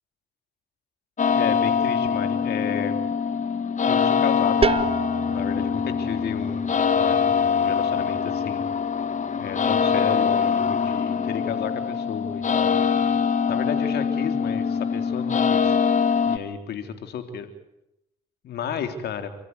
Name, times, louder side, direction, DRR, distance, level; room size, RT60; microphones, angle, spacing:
sound 1, 1.2-16.4, left 6 dB, 45° left, 1.9 m, -23 dB
voice 1, 1.4-2.9 3.9-4.8 5.3-8.6 9.4-12.8 13.5-15.8 16.2-17.5 18.4-19.3, left 8 dB, 75° left, 7 dB, 3.6 m, -33 dB
sound 2, 4.6-10.2, right 5 dB, 35° right, 1.2 m, -32 dB
29.5 x 15.0 x 9.7 m, 0.84 s
supercardioid pair, 60°, 17 cm